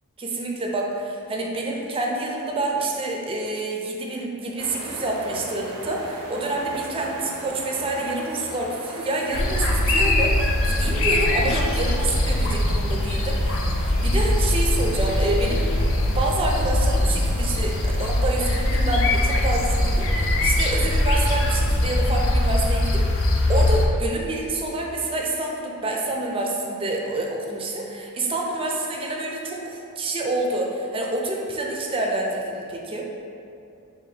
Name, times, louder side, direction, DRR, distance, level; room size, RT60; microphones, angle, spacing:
voice 1, 0.2-15.7 16.1-33.0, right 2 dB, 25° right, 0 dB, 0.4 m, -27 dB
sound 1, 4.6-21.7, right 1 dB, 85° right, 0.6 m, -39 dB
sound 2, 9.3-23.9, left 1 dB, 65° left, 0.4 m, -21 dB
2.8 x 2.6 x 4.1 m, 2.5 s
head